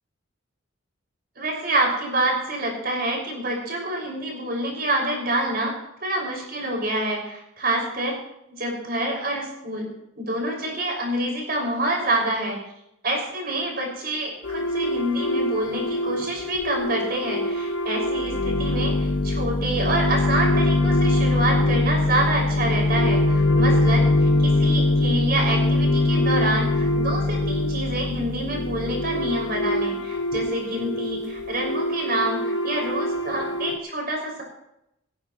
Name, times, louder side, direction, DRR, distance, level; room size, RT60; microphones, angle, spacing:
voice 1, 1.4-5.7 6.0-8.2 8.5-9.9 10.2-12.6 13.0-34.4, right 1 dB, 45° right, 0 dB, 6.0 m, -27 dB
sound 1, 14.4-33.8, left 2 dB, 60° left, 1.3 m, -23 dB
17.0 x 17.0 x 3.1 m, 0.81 s
head